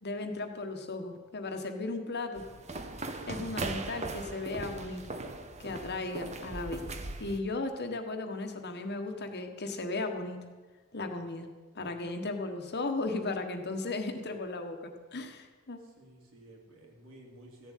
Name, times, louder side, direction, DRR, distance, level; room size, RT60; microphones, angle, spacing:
voice 1, 0.0-2.4 3.3-5.0 5.6-6.8 7.2-10.4 10.9-11.5 11.7-15.8, left 2 dB, 50° left, 5 dB, 1.4 m, -36 dB
sound 1, 2.4-7.4, right 2 dB, 30° right, 1.0 m, -39 dB
voice 2, 15.8-17.7, right 1 dB, 65° right, 0 dB, 3.2 m, -55 dB
15.0 x 7.4 x 9.3 m, 1.4 s
head